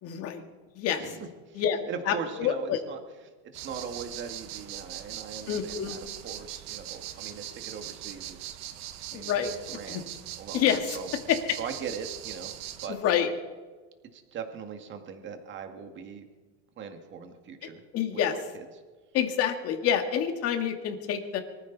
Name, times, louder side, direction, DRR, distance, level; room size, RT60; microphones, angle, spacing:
voice 1, 0.0-0.4 0.8-1.0 1.6-1.8 2.1-2.8 5.5-6.0 9.1-9.5 9.9-10.0 10.5-11.0 11.3-11.6 12.9-13.3 17.9-18.3 19.1-21.4, left 9 dB, 40° left, 6 dB, 2.1 m, -27 dB
voice 2, 0.9-3.0 3.4-8.6 9.1-9.3 9.7-10.7 10.9-11.1 11.6-12.5 12.8-13.0 14.1-16.2 16.8-17.8 18.1-18.7, right 6 dB, 30° right, 5 dB, 2.1 m, -40 dB
sound 1, 3.5-12.9, right 12 dB, 50° right, 1.2 m, -41 dB
24.0 x 14.5 x 4.1 m, 1.3 s
supercardioid pair, 145°, 36 cm